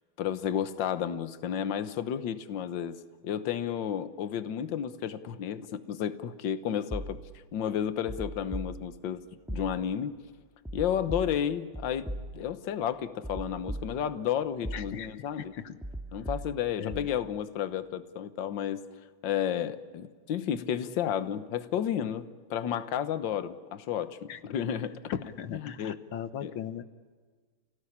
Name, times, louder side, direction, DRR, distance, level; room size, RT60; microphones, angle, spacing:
voice 1, 0.2-7.2 7.5-9.2 9.5-10.2 10.7-15.5 16.1-18.8 19.2-25.0 25.6-26.0 26.4-26.5, left 9 dB, 70° left, 11 dB, 1.7 m, -32 dB
sound 1, 6.9-7.5 8.1-9.1 9.5-10.1 10.7-12.7 13.2-14.3 14.6-15.3 15.8-17.2, right 1 dB, ahead, 1.6 m, -39 dB
voice 2, 14.7-15.8 16.8-17.1 24.3-24.4 25.1-26.8, left 9 dB, 85° left, 11 dB, 2.0 m, -38 dB
29.5 x 17.5 x 10.0 m, 1.5 s
omnidirectional pair, 2.2 m